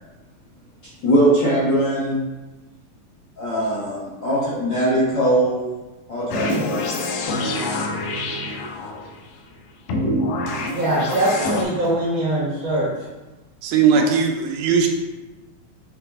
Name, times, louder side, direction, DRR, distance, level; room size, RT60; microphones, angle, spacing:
voice 1, 1.0-2.2 3.4-5.6 6.1-7.0 13.9-14.0, right 1 dB, 50° left, -8 dB, 1.4 m, -21 dB
sound 1, 6.3-9.1 9.9-11.6, left 2 dB, 75° left, 2.3 m, -26 dB
voice 2, 6.3-6.7 10.7-12.9, right 1 dB, 65° right, -6 dB, 1.2 m, -22 dB
voice 3, 13.6-14.9, right 6 dB, 90° right, 2 dB, 2.6 m, -18 dB
8.0 x 3.9 x 3.6 m, 1.1 s
omnidirectional pair, 4.1 m